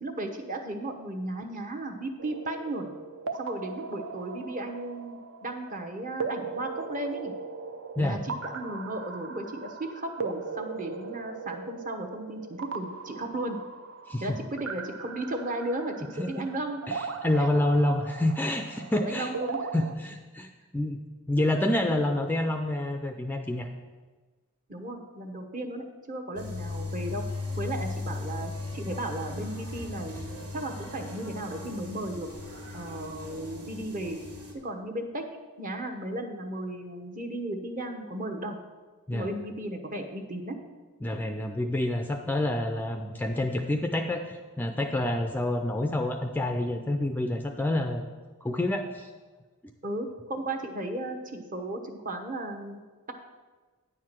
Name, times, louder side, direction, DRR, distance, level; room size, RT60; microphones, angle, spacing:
voice 1, 0.0-2.9 3.4-7.3 8.0-13.6 14.2-16.8 18.9-19.6 24.7-27.2 27.6-32.3 32.7-34.2 34.6-35.2 35.6-38.6 39.1-40.6 49.8-52.8, right 1 dB, 35° right, 4 dB, 1.0 m, -35 dB
sound 1, 2.2-19.9, right 4 dB, 60° right, 0.6 m, -39 dB
voice 2, 14.1-14.4 16.2-16.5 16.9-19.3 19.7-21.0 21.3-23.7 39.1-39.3 41.0-48.1 48.4-49.1, left 1 dB, 10° left, 4 dB, 0.4 m, -28 dB
sound 2, 26.4-34.5, left 3 dB, 85° right, 2.4 m, -37 dB
9.9 x 4.7 x 7.4 m, 1.3 s
head